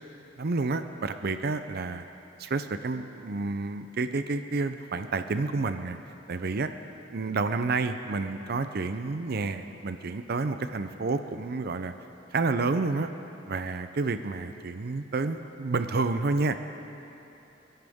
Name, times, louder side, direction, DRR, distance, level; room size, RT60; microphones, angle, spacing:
voice 1, 0.4-2.0 2.4-6.0 6.3-6.7 7.1-11.9 12.3-13.1 13.5-16.6, right 3 dB, 55° right, 9 dB, 0.6 m, -29 dB
29.5 x 11.5 x 3.6 m, 3.0 s
head